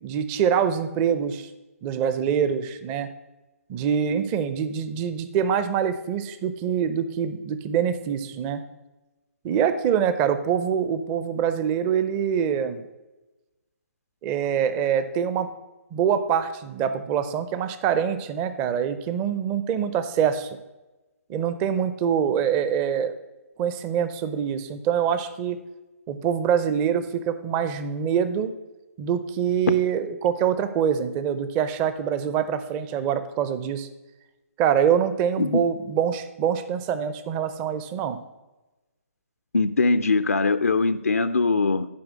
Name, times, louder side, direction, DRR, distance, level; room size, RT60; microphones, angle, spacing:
voice 1, 0.0-1.5 1.8-3.1 3.7-8.6 9.4-12.8 14.2-15.5 15.9-20.5 21.3-23.1 23.6-25.6 26.1-28.5 29.0-33.9 34.6-38.2, right 8 dB, 20° right, 12 dB, 0.6 m, -25 dB
voice 2, 39.5-41.9, left 3 dB, 75° left, 10 dB, 0.5 m, -21 dB
11.5 x 5.0 x 6.2 m, 1.1 s
figure-of-eight pair, 135°, 8 cm